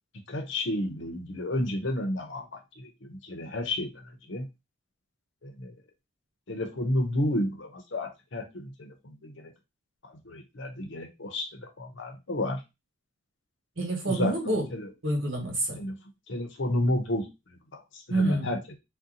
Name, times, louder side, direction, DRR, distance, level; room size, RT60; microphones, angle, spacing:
voice 1, 0.3-4.5 5.4-5.7 6.5-9.5 10.0-12.6 14.1-14.9 15.8-16.0 16.3-17.6 17.9-18.7, left 1 dB, 60° left, 0.7 m, -31 dB
voice 2, 13.8-14.7 15.0-15.8 18.1-18.6, right 2 dB, 65° right, 1.3 m, -28 dB
2.8 x 2.2 x 3.8 m
head